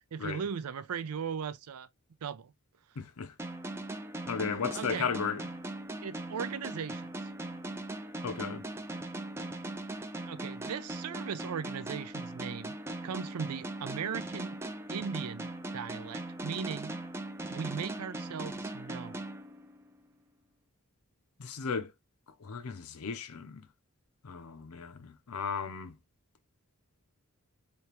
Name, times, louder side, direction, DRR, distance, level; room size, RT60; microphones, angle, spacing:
voice 1, 0.1-1.9 2.2-2.5 4.7-5.1 6.0-7.0 10.3-12.8 13.0-14.6 14.9-16.9 17.5-19.2, right 6 dB, 90° right, 0.5 m, -38 dB
voice 2, 3.0-3.3 4.3-5.4 8.2-8.6 21.4-21.9 22.4-23.6 24.2-25.9, left 5 dB, 80° left, 0.6 m, -35 dB
sound 1, 3.4-20.0, right 2 dB, 10° right, 0.3 m, -40 dB
3.4 x 2.8 x 2.9 m
head